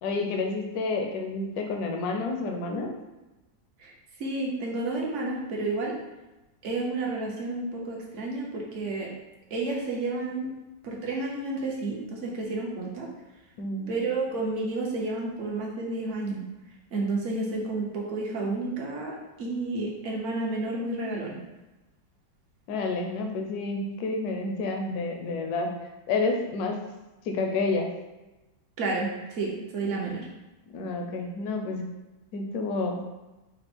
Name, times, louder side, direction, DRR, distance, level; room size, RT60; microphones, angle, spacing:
voice 1, 0.0-2.9 13.6-13.9 22.7-25.7 26.1-26.8 27.2-27.9 30.7-31.9 32.3-33.0, left 3 dB, 65° left, 2 dB, 1.0 m, -29 dB
voice 2, 4.2-5.9 6.6-9.1 9.5-10.5 10.8-13.1 13.9-16.4 16.9-21.4 28.8-30.3, right 2 dB, 50° right, -2 dB, 1.0 m, -31 dB
5.3 x 2.1 x 4.3 m, 1.0 s
omnidirectional pair, 2.0 m